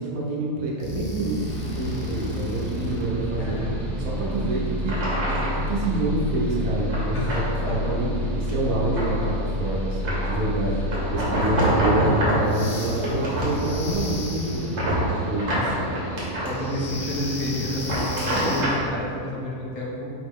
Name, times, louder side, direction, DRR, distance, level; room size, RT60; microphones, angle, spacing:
voice 1, 0.0-1.3 1.6-4.9 5.2-15.7, right 2 dB, 70° right, -4 dB, 1.2 m, -27 dB
sound 1, 0.8-11.2 12.4-14.9 16.5-18.6, left 1 dB, 60° left, 0.6 m, -31 dB
Mechanical fan, 1.4-18.9, left 1 dB, ahead, 0.5 m, -36 dB
voice 2, 3.4-3.8 7.1-7.8 11.8-12.2 15.5-15.8 16.4-20.1, left 1 dB, 75° left, -5 dB, 1.4 m, -30 dB
sound 2, 4.2-4.3 4.8-5.6 6.9-7.4 7.8-8.1 8.5-9.3 10.0-10.4 10.9-12.5 13.0-14.2 14.5-16.5 17.7-18.8, equal, 50° right, 1.3 m, -26 dB
4.7 x 3.1 x 3.6 m, 2.5 s
omnidirectional pair, 1.6 m